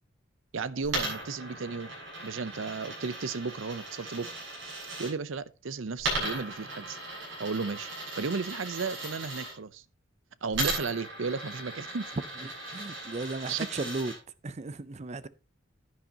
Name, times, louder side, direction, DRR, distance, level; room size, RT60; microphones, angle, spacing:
voice 1, 0.5-1.9 2.2-4.3 5.0-7.0 7.4-7.9 8.1-9.8 10.4-12.1 13.5-13.7, right 4 dB, 85° right, 0.7 m, -34 dB
Coin (dropping), 0.8-5.1 6.0-9.5 10.5-14.2, right 2 dB, 65° right, 6.9 m, -37 dB
voice 2, 12.4-14.1 14.4-15.3, right 3 dB, 35° right, 0.5 m, -36 dB
10.5 x 9.9 x 2.9 m
head